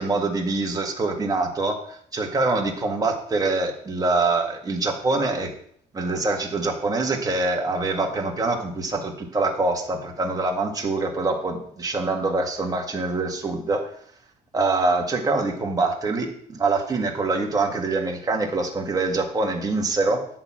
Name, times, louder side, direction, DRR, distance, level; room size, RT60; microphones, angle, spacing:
voice 1, 0.0-1.8 2.1-5.5 5.9-13.9 14.5-20.3, right 3 dB, 20° right, 1 dB, 1.8 m, -24 dB
10.5 x 4.0 x 7.4 m, 0.62 s
cardioid pair, 110°, 17 cm